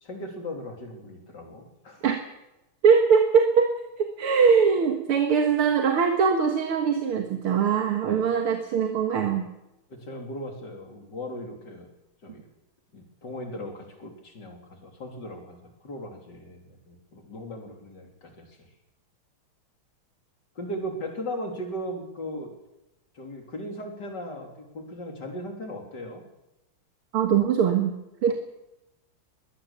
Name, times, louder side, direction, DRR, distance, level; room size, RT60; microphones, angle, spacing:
voice 1, 0.0-2.1 9.9-11.9 12.2-12.5 12.9-15.6 15.8-18.6 20.6-22.5 23.2-26.2, equal, 50° left, 2 dB, 4.0 m, -37 dB
voice 2, 2.8-9.5 27.1-27.9 28.2-28.3, right 6 dB, 80° right, 4 dB, 2.4 m, -22 dB
22.0 x 17.5 x 7.3 m, 0.93 s
omnidirectional pair, 2.4 m